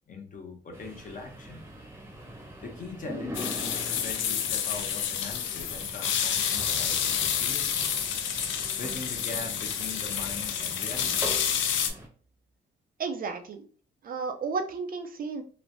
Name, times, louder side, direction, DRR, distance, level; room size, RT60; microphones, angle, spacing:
voice 1, 0.1-1.7 2.6-7.9 8.8-11.3, left 3 dB, 40° left, 3 dB, 0.8 m, -41 dB
sound 1, 0.7-12.1, equal, 10° right, 0.8 m, -42 dB
sound 2, 3.3-11.9, left 8 dB, 75° left, 0.4 m, -29 dB
voice 2, 13.0-13.7 14.0-15.4, right 4 dB, 45° right, 7 dB, 0.4 m, -33 dB
3.0 x 2.1 x 2.5 m, 0.42 s
cardioid pair, 90°, 20 cm